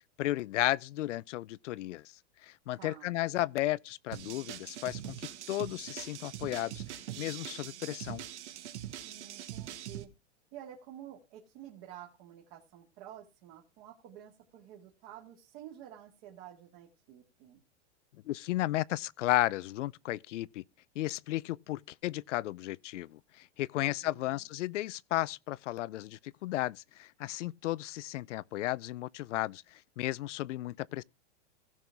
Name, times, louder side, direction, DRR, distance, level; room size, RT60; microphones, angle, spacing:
voice 1, 0.2-2.1 2.4-6.8 7.2-8.2 18.3-20.6 21.0-31.0, left 15 dB, 85° left, 0.5 m, -34 dB
voice 2, 2.8-3.2 9.0-10.1 10.5-17.6 23.8-24.5, right 11 dB, 40° right, 2.2 m, -50 dB
sound 1, 4.1-10.0, right 11 dB, 75° right, 1.6 m, -43 dB
16.5 x 6.3 x 3.4 m
supercardioid pair, 155°, 35 cm